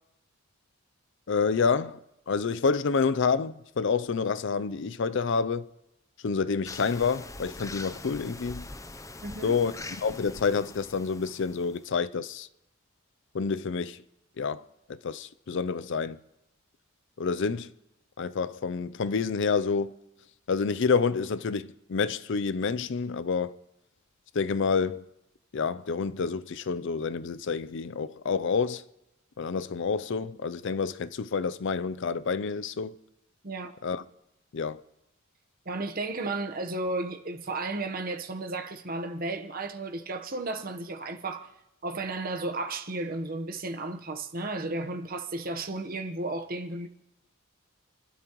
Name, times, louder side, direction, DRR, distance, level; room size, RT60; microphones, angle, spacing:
voice 1, 1.3-2.0 2.3-5.7 6.2-8.7 9.4-9.7 10.0-12.5 13.3-14.0 14.4-14.6 14.9-16.2 17.2-17.7 18.2-19.9 20.5-23.6 24.3-25.0 25.5-28.8 29.4-33.0 33.8-34.0 34.5-34.8, left 5 dB, 55° left, 0.5 m, -28 dB
sound 1, 6.6-11.8, left 2 dB, 15° left, 0.6 m, -43 dB
voice 2, 9.2-9.6 33.4-33.7 35.6-41.5 41.8-46.9, right 2 dB, 45° right, 1.1 m, -33 dB
29.5 x 12.5 x 3.1 m
head